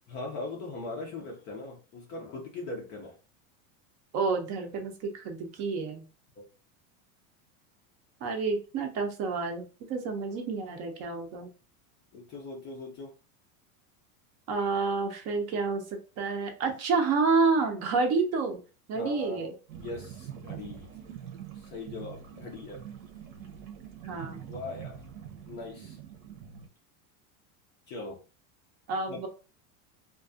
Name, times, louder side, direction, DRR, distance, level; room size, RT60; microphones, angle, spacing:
voice 1, 0.1-3.1 6.4-6.5 12.1-13.1 18.9-20.9 21.5-22.8 24.5-25.0 25.5-26.0 27.9-28.2 29.1-29.3, left 2 dB, 30° left, 0 dB, 0.4 m, -40 dB
voice 2, 4.1-6.1 8.2-11.5 14.5-15.8 16.2-18.6 18.9-19.5 24.0-24.5 28.9-29.3, right 4 dB, 40° right, 4 dB, 0.5 m, -29 dB
sound 1, 19.7-26.7, right 9 dB, 70° right, 0.8 m, -44 dB
2.4 x 2.2 x 2.4 m, 0.34 s
supercardioid pair, 140°, 42 cm